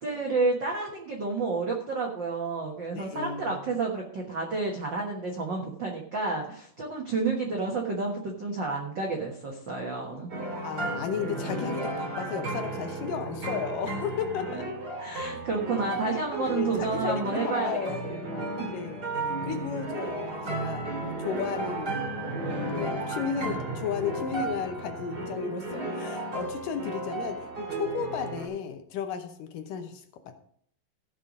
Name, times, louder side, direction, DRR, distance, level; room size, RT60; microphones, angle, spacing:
voice 1, 0.0-10.3 15.0-18.2, right 3 dB, 75° right, 0 dB, 1.0 m, -30 dB
voice 2, 2.9-3.6 10.6-14.7 16.0-30.4, left 7 dB, 70° left, 6 dB, 2.3 m, -34 dB
sound 1, 10.3-28.5, right 2 dB, 30° right, 2.3 m, -34 dB
15.5 x 5.7 x 5.2 m, 0.62 s
omnidirectional pair, 4.3 m